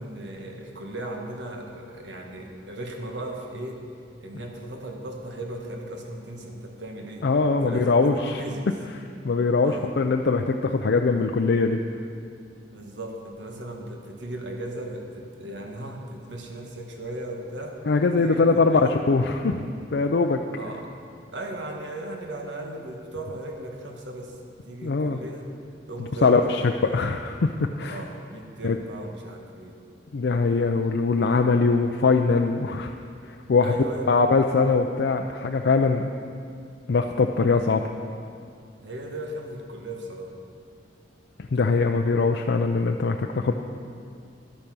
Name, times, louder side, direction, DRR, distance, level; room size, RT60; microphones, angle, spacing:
voice 1, 0.0-3.8 4.2-7.3 7.5-8.7 9.6-9.9 12.7-17.8 18.2-18.9 20.5-20.9 21.3-24.4 24.6-25.5 25.9-27.0 27.9-29.8 33.6-34.3 38.8-40.3, right 1 dB, 75° right, 2 dB, 1.4 m, -36 dB
voice 2, 7.2-8.4 9.2-11.8 17.9-19.7 19.9-20.4 24.8-25.2 26.2-26.6 26.9-28.0 28.6-28.8 30.1-32.9 33.5-33.7 34.1-36.1 36.9-37.8 41.5-43.5, left 4 dB, 65° left, 4 dB, 0.5 m, -22 dB
11.5 x 8.7 x 6.1 m, 2.3 s
head